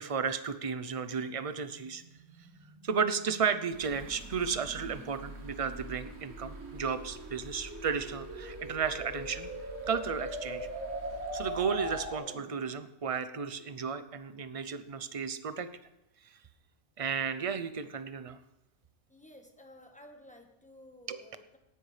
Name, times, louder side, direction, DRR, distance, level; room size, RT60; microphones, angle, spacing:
voice 1, 0.0-2.0 2.8-9.5 9.9-10.7 11.3-15.7 17.0-18.4 21.1-21.2, right 6 dB, 40° right, 11 dB, 0.5 m, -33 dB
Power Overload, 1.3-12.5, equal, 10° right, 2.5 m, -42 dB
sound 1, 3.7-12.2, right 2 dB, 60° right, 1.5 m, -48 dB
voice 2, 19.1-21.6, left 1 dB, 5° left, 3 dB, 1.3 m, -54 dB
18.0 x 10.0 x 3.3 m, 0.90 s
omnidirectional pair, 1.3 m